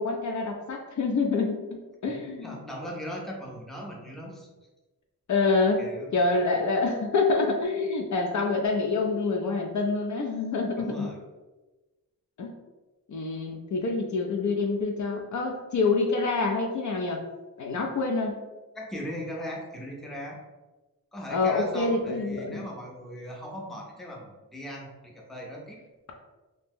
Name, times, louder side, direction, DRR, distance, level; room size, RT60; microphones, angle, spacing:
voice 1, 0.0-2.6 5.3-11.1 12.4-12.5 13.1-17.2 17.6-18.5 21.3-22.7, left 3 dB, 55° left, 2 dB, 0.4 m, -27 dB
voice 2, 2.0-4.5 5.8-6.1 10.8-11.2 18.7-20.4 21.1-25.8, equal, ahead, -2 dB, 0.5 m, -39 dB
2.7 x 2.0 x 3.5 m, 1.2 s
wide cardioid pair, 120°, 36 cm